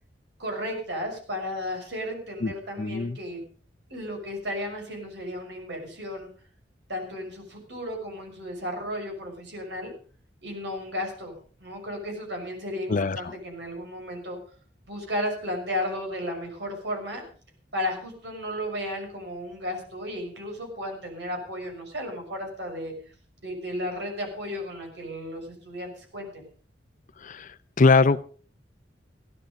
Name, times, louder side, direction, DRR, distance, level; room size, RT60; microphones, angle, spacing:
voice 1, 0.4-3.4 3.9-6.3 6.9-9.9 10.4-14.4 14.9-17.2 17.7-22.9 23.4-26.5, left 1 dB, 70° right, 2 dB, 6.1 m, -34 dB
voice 2, 2.8-3.2 12.9-13.3 27.2-28.2, left 3 dB, 45° left, 14 dB, 0.6 m, -22 dB
16.5 x 12.0 x 5.2 m, 0.41 s
head